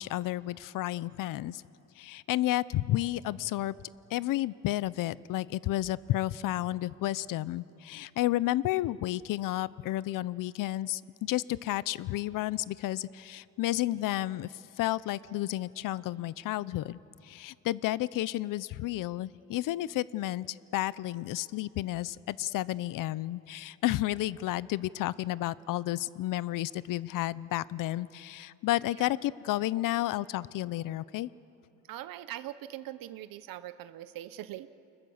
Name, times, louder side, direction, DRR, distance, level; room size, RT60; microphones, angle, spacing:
voice 1, 0.0-1.6 2.0-3.8 4.1-31.3, left 15 dB, 70° left, 19 dB, 0.6 m, -31 dB
voice 2, 31.9-34.8, right 13 dB, 80° right, 12 dB, 0.9 m, -42 dB
29.5 x 25.0 x 7.2 m, 2.9 s
cardioid pair, 130°, 33 cm